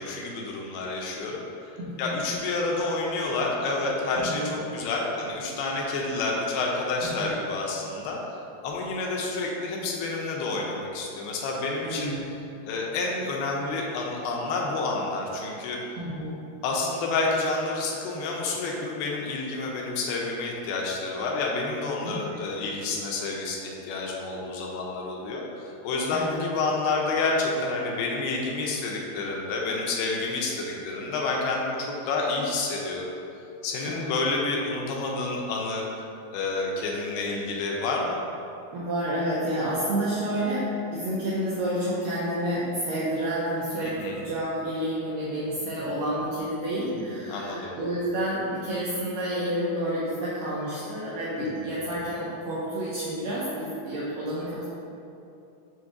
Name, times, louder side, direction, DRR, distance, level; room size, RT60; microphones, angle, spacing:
voice 1, 0.0-1.7 2.0-12.1 12.7-15.8 16.6-33.1 33.6-35.9 36.3-38.2 44.0-44.2 46.8-47.7 51.4-51.7, left 3 dB, 85° left, -1 dB, 2.4 m, -29 dB
voice 2, 1.8-2.1 4.2-4.5 7.0-7.4 11.8-12.3 16.0-16.4 22.0-22.4 26.1-26.4 33.9-34.1 38.7-54.6, right 1 dB, 90° right, -8 dB, 1.9 m, -30 dB
6.8 x 2.5 x 2.5 m, 2.7 s
omnidirectional pair, 4.4 m